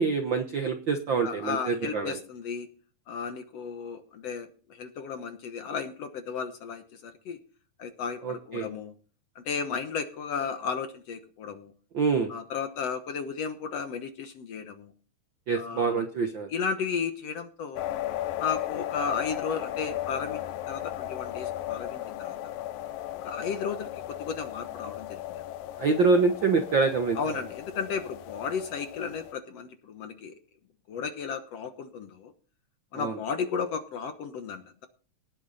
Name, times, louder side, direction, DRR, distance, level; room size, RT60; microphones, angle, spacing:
voice 1, 0.0-2.2 8.2-8.7 11.9-12.3 15.5-16.5 25.8-27.2 32.9-33.2, right 4 dB, 60° right, 6 dB, 1.2 m, -25 dB
voice 2, 1.2-2.7 3.1-7.4 7.8-8.9 9.4-11.7 12.3-14.9 15.6-16.0 16.5-17.8 18.4-22.4 23.2-25.4 27.2-30.3 30.9-32.3 32.9-34.9, left 6 dB, 60° left, 8 dB, 1.9 m, -34 dB
sound 1, 17.8-29.3, left 13 dB, 85° left, 2.5 m, -36 dB
18.5 x 8.2 x 4.1 m, 0.39 s
omnidirectional pair, 3.9 m